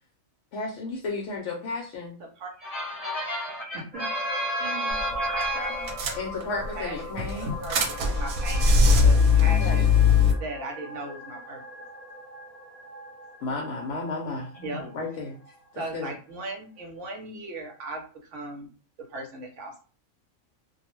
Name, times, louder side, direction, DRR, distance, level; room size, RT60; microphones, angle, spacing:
voice 1, 0.5-2.2 6.2-7.5 9.6-9.8 13.4-14.5 14.9-15.4 15.7-16.1, left 3 dB, 65° left, 0.8 m, -33 dB
voice 2, 2.6-5.9 14.5-14.9, right 1 dB, 30° left, 0.9 m, -31 dB
sound 1, 3.9-15.7 16.1-16.2, left 2 dB, 30° right, 0.8 m, -41 dB
voice 3, 4.6-5.0 5.3-5.7 6.5-6.9 7.6-9.9 10.4-11.6 14.6-14.8 15.7-18.7 19.0-19.8, right 2 dB, 65° right, 0.9 m, -38 dB
sound 2, 4.9-5.1 5.4-5.5 5.9-6.7 7.2-10.3, left 4 dB, 80° right, 1.1 m, -20 dB
2.5 x 2.1 x 3.0 m
omnidirectional pair, 1.5 m